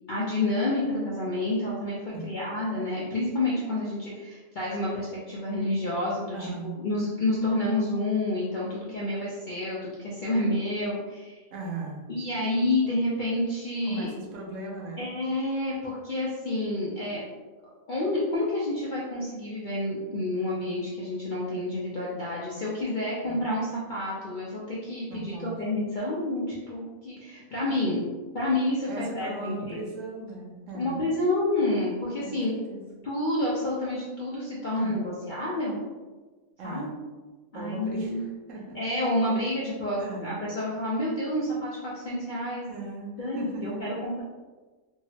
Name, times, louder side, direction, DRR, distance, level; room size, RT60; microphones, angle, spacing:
voice 1, 0.1-11.4 12.1-14.1 15.0-17.2 17.9-28.1 28.3-29.8 30.7-32.5 33.0-35.8 36.6-36.9 37.5-38.2 38.7-42.7 43.2-44.2, left 1 dB, 60° left, -7 dB, 0.5 m, -29 dB
voice 2, 6.3-6.7 11.5-12.1 13.9-15.1 23.2-23.5 25.1-25.5 28.9-31.0 32.2-32.4 32.7-32.8 34.7-35.0 36.6-36.9 37.5-38.8 40.0-40.4 42.7-44.0, right 2 dB, 70° right, -1 dB, 1.0 m, -38 dB
3.6 x 2.0 x 2.7 m, 1.3 s
omnidirectional pair, 1.5 m